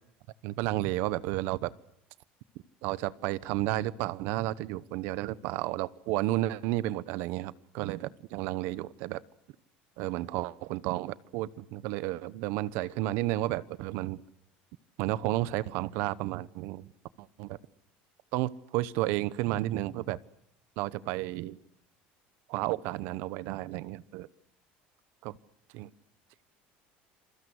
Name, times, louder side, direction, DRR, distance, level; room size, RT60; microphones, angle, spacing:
voice 1, 0.4-1.7 2.8-9.2 10.0-14.2 15.0-16.9 17.2-17.6 18.3-20.2 20.8-21.6 22.5-24.3 25.2-25.4 25.7-25.9, right 16 dB, 60° right, 19 dB, 1.0 m, -32 dB
28.0 x 22.5 x 8.0 m, 0.74 s
cardioid pair, 175°, 4 cm